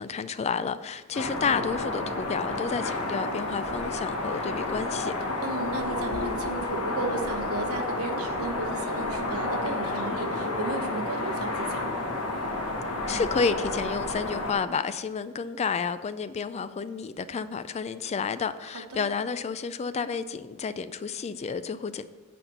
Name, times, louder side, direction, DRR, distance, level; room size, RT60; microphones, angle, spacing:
voice 1, 0.0-5.1 13.1-22.1, left 5 dB, 30° left, 0.3 m, -30 dB
sound 1, 1.1-14.5, left 2 dB, 75° left, 1.5 m, -31 dB
voice 2, 5.4-11.8 18.7-19.1, right 2 dB, 75° right, 1.0 m, -34 dB
9.9 x 4.3 x 6.7 m
head